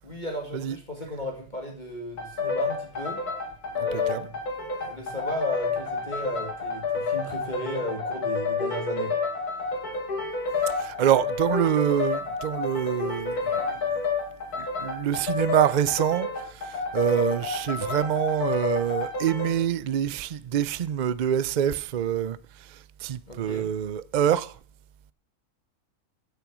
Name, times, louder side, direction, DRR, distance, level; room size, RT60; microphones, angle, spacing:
voice 1, 0.0-3.2 3.8-4.4 4.8-9.1 23.3-23.7, left 1 dB, 30° left, 2.4 m, -35 dB
sound 1, 2.2-19.6, left 4 dB, 85° left, 2.6 m, -30 dB
voice 2, 3.8-4.3 10.7-13.8 14.6-24.5, right 10 dB, 90° right, 0.4 m, -26 dB
14.5 x 6.8 x 6.1 m
omnidirectional pair, 1.6 m